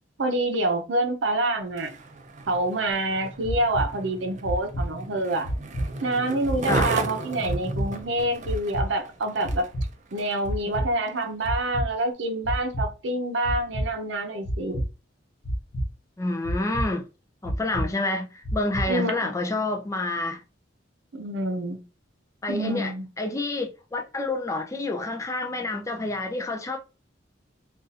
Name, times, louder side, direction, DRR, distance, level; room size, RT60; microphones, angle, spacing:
voice 1, 0.2-1.9 2.5-5.5 6.0-9.7 10.1-14.8 18.9-19.3 21.1-21.8 22.5-23.1, right 1 dB, 75° right, 0.7 m, -27 dB
Skateboard, 1.6-10.5 11.1-11.2, right 3 dB, 40° right, 0.5 m, -35 dB
sound 1, 3.4-3.9 4.4-4.9 5.4-5.9 6.4-6.9 7.4-7.9 8.4-8.9 9.4-9.9 10.4-10.9 11.4-11.9 12.4-12.9 13.4-13.9 14.4-14.9 15.4-15.9 16.4-16.9 17.4-17.9 18.4-18.9, equal, 80° left, 0.8 m, -28 dB
voice 2, 16.2-17.1 17.4-20.4 22.4-26.8, left 2 dB, 15° left, 0.4 m, -28 dB
2.6 x 2.4 x 4.0 m
head